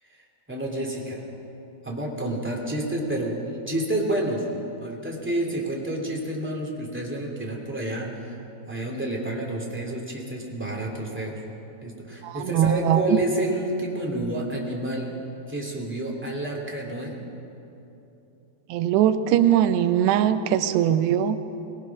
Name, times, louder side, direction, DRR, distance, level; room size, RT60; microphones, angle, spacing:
voice 1, 0.5-1.2 1.8-3.4 3.7-4.4 4.8-8.3 8.7-11.4 11.8-15.1 15.5-17.1, right 1 dB, 5° right, -2 dB, 1.7 m, -29 dB
voice 2, 12.2-13.2 18.7-21.4, right 10 dB, 90° right, 11 dB, 2.9 m, -21 dB
23.5 x 19.0 x 5.9 m, 3.0 s
omnidirectional pair, 4.8 m